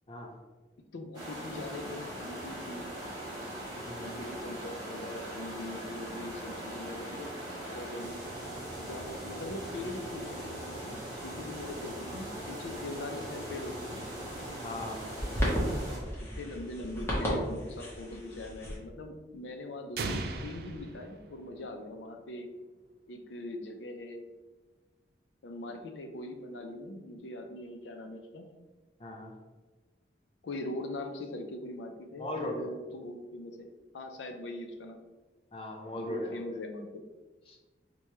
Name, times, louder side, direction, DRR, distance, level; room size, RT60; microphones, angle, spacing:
voice 1, 0.9-2.9 4.0-7.4 7.7-8.2 8.8-14.0 15.3-15.7 16.2-22.5 23.1-24.3 25.4-28.5 30.4-33.7 33.9-35.0 36.0-37.0, left 1 dB, 90° left, 5 dB, 0.5 m, -41 dB
sound 1, 1.1-16.0, right 1 dB, 25° right, 1.0 m, -40 dB
voice 2, 3.9-4.2 14.6-15.0 29.0-29.3 32.2-32.6 35.5-36.4 37.5-37.6, left 1 dB, 30° left, 1 dB, 0.5 m, -38 dB
sound 2, 13.6-18.8, equal, 15° left, 0.9 m, -35 dB
sound 3, 20.0-21.9, right 3 dB, 55° right, 0.3 m, -37 dB
4.5 x 2.2 x 3.0 m, 1.3 s
head